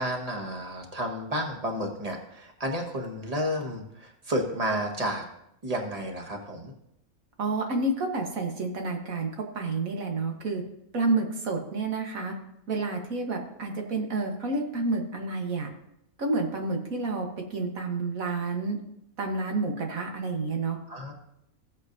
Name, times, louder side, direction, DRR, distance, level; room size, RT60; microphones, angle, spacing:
voice 1, 0.0-5.2 5.6-6.7 20.9-21.1, equal, 25° right, 2 dB, 1.4 m, -31 dB
voice 2, 7.4-10.6 10.9-12.3 12.7-15.7 16.2-18.8 19.2-20.8, right 3 dB, 70° right, 2 dB, 1.7 m, -29 dB
15.5 x 8.3 x 2.6 m, 0.79 s
omnidirectional pair, 1.5 m